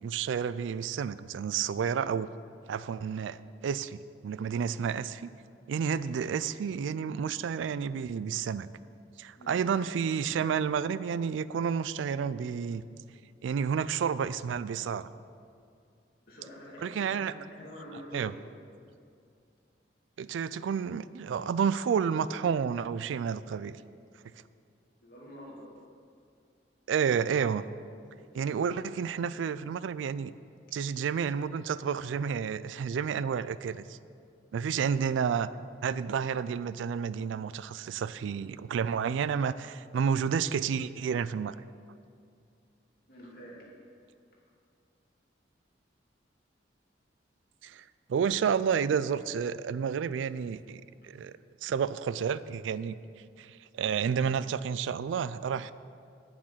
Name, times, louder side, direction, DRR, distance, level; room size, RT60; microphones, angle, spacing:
voice 1, 0.0-2.3 2.7-5.3 5.7-8.7 9.2-12.9 13.4-15.1 16.8-17.3 18.1-18.3 20.2-23.8 26.9-27.6 28.3-30.3 30.7-34.0 34.5-35.5 35.8-41.6 47.6-47.8 48.1-53.0 53.4-55.7, right 7 dB, 90° right, 16 dB, 0.3 m, -30 dB
voice 2, 16.2-18.4 24.2-24.4 25.0-25.7 28.1-28.3 43.1-43.7, equal, 55° left, -5 dB, 2.5 m, -47 dB
8.8 x 7.4 x 5.7 m, 2.4 s
head